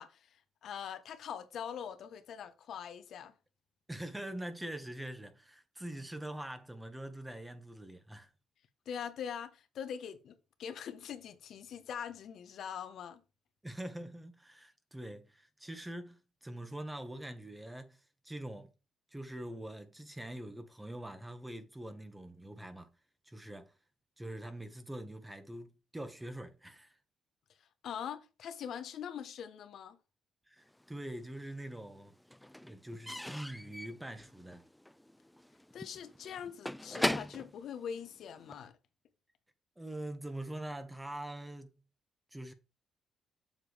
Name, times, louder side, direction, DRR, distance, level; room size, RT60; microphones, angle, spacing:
voice 1, 0.0-3.3 8.8-13.2 27.8-30.0 35.7-38.7, left 8 dB, 70° left, 1.1 m, -43 dB
voice 2, 3.9-8.3 13.6-18.0 18.2-18.7 19.1-22.9 23.2-23.7 24.2-27.0 30.5-32.1 32.6-34.6 39.8-41.7 42.3-42.5, right 1 dB, 10° right, 1.6 m, -44 dB
Slam / Squeak / Wood, 30.8-31.6 31.9-38.7, left 1 dB, 5° left, 0.3 m, -40 dB
7.5 x 7.0 x 3.4 m
cardioid pair, 90°, 0 cm